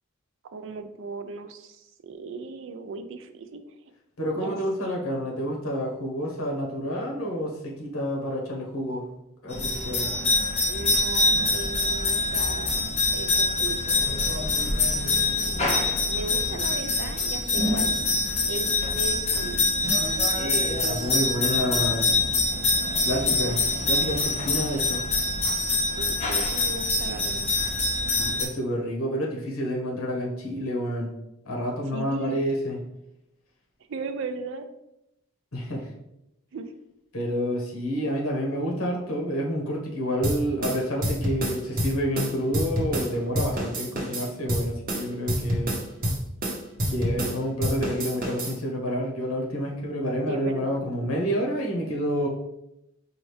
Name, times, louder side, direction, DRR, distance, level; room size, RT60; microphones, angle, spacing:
voice 1, 0.5-3.6 4.3-5.0 10.7-14.0 16.1-17.9 18.5-19.7 23.4-23.6 26.0-27.5 31.9-32.4 33.9-34.7 36.5-36.7 50.3-50.8, right 4 dB, 60° right, 8 dB, 0.4 m, -37 dB
voice 2, 4.2-9.1 9.4-10.1 20.4-22.2 23.0-23.6 23.9-25.0 28.1-31.1 31.4-32.8 35.5-35.9 37.1-45.8 46.9-52.3, equal, 80° left, -1 dB, 1.1 m, -29 dB
sound 1, 9.5-28.4, left 3 dB, 30° left, 0.8 m, -25 dB
sound 2, 40.2-43.1 43.4-47.4 47.6-48.5, equal, 40° right, 1.0 m, -28 dB
5.1 x 2.4 x 3.2 m, 0.86 s
head